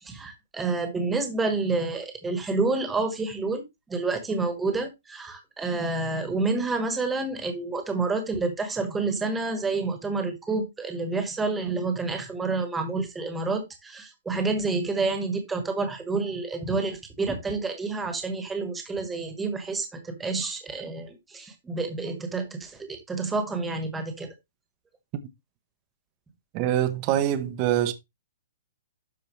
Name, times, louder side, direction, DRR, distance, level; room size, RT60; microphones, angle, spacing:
voice 1, 0.0-3.6 3.9-24.3, right 3 dB, 5° right, 1.3 m, -29 dB
voice 2, 26.5-27.9, right 11 dB, 25° right, 0.7 m, -24 dB
12.0 x 4.6 x 3.1 m
hypercardioid pair, 180°, 0 cm